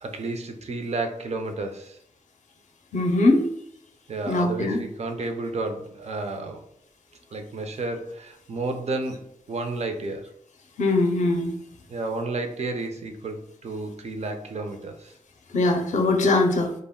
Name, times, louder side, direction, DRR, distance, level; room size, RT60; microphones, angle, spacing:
voice 1, 0.0-2.0 4.1-6.7 7.3-9.2 9.5-10.3 11.9-15.1, right 3 dB, 50° right, 0.4 m, -31 dB
voice 2, 2.9-3.4 4.3-4.8 10.8-11.5 15.5-16.7, left 2 dB, 55° left, 0.4 m, -21 dB
2.1 x 2.0 x 3.6 m
wide cardioid pair, 135°, 15 cm